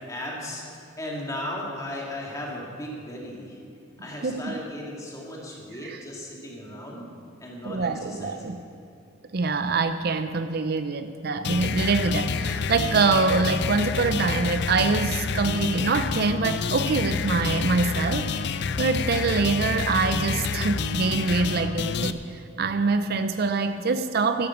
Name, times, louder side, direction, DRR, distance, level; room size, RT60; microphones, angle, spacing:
voice 1, 0.1-0.6 1.0-3.6 4.0-7.1 7.4-8.6, left 1 dB, 20° left, -3 dB, 2.5 m, -36 dB
voice 2, 4.2-4.6 5.8-6.0 7.6-8.6 9.3-18.5 18.8-24.5, right 4 dB, 55° right, 9 dB, 0.5 m, -25 dB
sound 1, 11.4-22.1, left 5 dB, 60° left, 0.5 m, -28 dB
12.0 x 12.0 x 6.0 m, 2.7 s
head